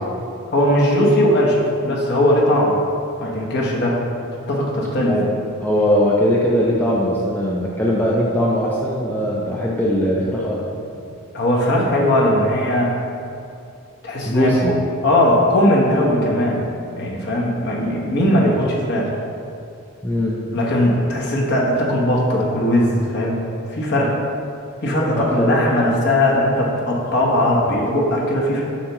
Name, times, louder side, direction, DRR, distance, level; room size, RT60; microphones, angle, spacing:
voice 1, 0.5-2.8 3.2-4.0 4.5-5.2 11.3-13.0 14.0-14.5 15.0-16.7 17.0-19.1 20.5-24.1 24.8-28.6, left 1 dB, 50° left, -3 dB, 1.0 m, -18 dB
voice 2, 5.6-10.6 14.2-14.7 20.0-20.4 25.1-25.5, equal, 10° left, -4 dB, 0.5 m, -20 dB
7.1 x 5.6 x 3.0 m, 2.6 s
head